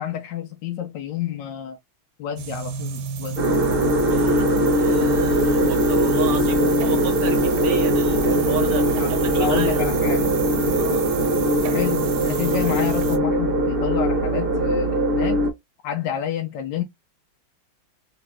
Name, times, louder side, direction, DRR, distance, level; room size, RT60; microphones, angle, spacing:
voice 1, 0.0-1.8 2.2-3.6 6.3-6.4 8.9-9.1 9.4-10.3 11.7-15.5 15.8-16.8, left 9 dB, 70° left, 1.1 m, -29 dB
Williams Pond, 2.4-13.2, right 9 dB, 85° right, 1.5 m, -32 dB
sound 1, 3.4-15.5, equal, 40° right, 0.8 m, -21 dB
voice 2, 4.1-9.9 10.7-11.1, right 7 dB, 65° right, 1.2 m, -34 dB
3.3 x 3.1 x 2.9 m
omnidirectional pair, 2.3 m